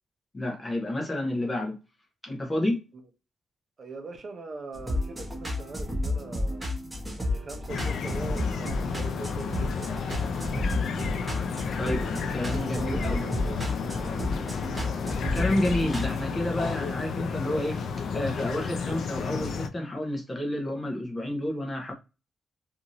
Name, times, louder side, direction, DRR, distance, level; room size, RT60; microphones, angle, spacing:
voice 1, 0.3-1.8 2.2-2.8 11.8-13.2 15.3-17.8 18.1-21.9, left 1 dB, 20° left, 0.6 m, -30 dB
voice 2, 3.8-6.7 7.2-10.0 11.7-12.0 12.5-14.3, right 3 dB, 40° right, 0.7 m, -42 dB
sound 1, 4.7-16.2, left 1 dB, 10° right, 0.9 m, -32 dB
sound 2, 7.7-19.7, left 5 dB, 60° left, 0.4 m, -32 dB
sound 3, 8.0-13.1 13.4-14.2 14.5-15.1, right 1 dB, 80° right, 1.0 m, -47 dB
2.6 x 2.5 x 2.9 m
wide cardioid pair, 145°, 0 cm